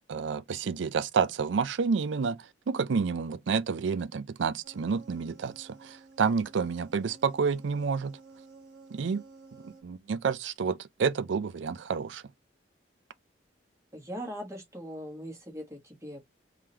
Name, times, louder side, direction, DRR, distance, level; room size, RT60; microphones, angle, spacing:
voice 1, 0.1-2.4 2.7-8.2 8.9-9.2 9.6-12.2, right 5 dB, 75° right, 0.4 m, -29 dB
sound 1, 4.6-9.8, right 3 dB, 55° right, 1.4 m, -53 dB
voice 2, 13.9-16.2, equal, 15° right, 1.4 m, -40 dB
3.7 x 3.2 x 2.8 m
head